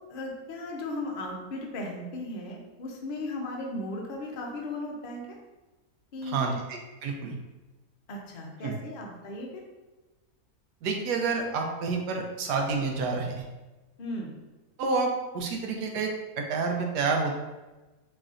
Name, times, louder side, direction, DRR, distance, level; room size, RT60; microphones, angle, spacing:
voice 1, 0.1-5.3 6.1-6.6 8.1-9.6 14.0-14.3, left 1 dB, 70° left, 0 dB, 0.5 m, -36 dB
voice 2, 6.3-7.4 8.6-8.7 10.8-13.4 14.8-17.4, right 4 dB, 90° right, 2 dB, 1.2 m, -29 dB
3.9 x 3.2 x 2.4 m, 1.1 s
omnidirectional pair, 1.7 m